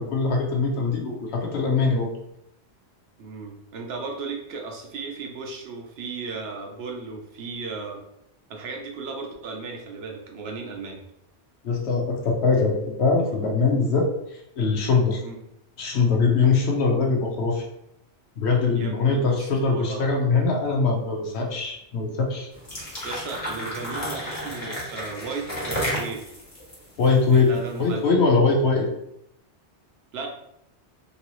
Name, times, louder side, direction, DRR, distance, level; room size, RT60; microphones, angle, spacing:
voice 1, 0.0-2.1 11.6-15.2 15.8-17.7 18.4-22.5 27.0-27.5 27.8-28.9, left 4 dB, 75° left, 1 dB, 1.0 m, -22 dB
voice 2, 3.2-8.0 8.5-11.0 15.2-15.4 18.7-20.0 23.0-26.4 27.3-28.1 30.1-30.3, right 4 dB, 70° right, 1 dB, 0.9 m, -35 dB
sound 1, 22.5-27.8, equal, 35° left, 1.2 m, -32 dB
3.0 x 2.7 x 3.0 m, 0.78 s
omnidirectional pair, 1.1 m